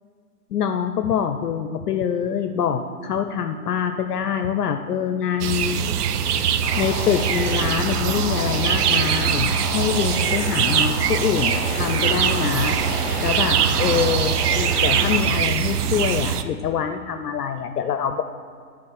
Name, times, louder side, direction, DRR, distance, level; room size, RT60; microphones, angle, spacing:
voice 1, 0.5-5.8 6.8-12.8 13.2-18.2, left 8 dB, 75° left, 7 dB, 0.6 m, -25 dB
sound 1, 5.4-16.4, right 8 dB, 70° right, 0.7 m, -22 dB
sound 2, 6.6-15.2, equal, ahead, 0.5 m, -30 dB
8.5 x 3.8 x 6.4 m, 2.1 s
hypercardioid pair, 145°, 48 cm